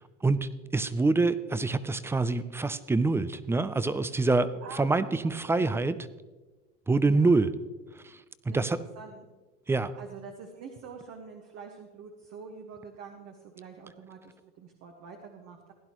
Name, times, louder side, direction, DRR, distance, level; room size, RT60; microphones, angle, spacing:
voice 1, 0.2-4.5 4.8-6.0 6.9-7.5 8.0-8.2 8.5-8.8 9.7-9.9, right 3 dB, 10° right, 15 dB, 0.4 m, -25 dB
voice 2, 4.6-5.9 7.0-7.4 8.5-8.7 8.9-9.3 9.8-15.7, right 5 dB, 50° right, 3 dB, 1.4 m, -46 dB
16.0 x 11.0 x 3.0 m, 1.2 s
supercardioid pair, 110°, 31 cm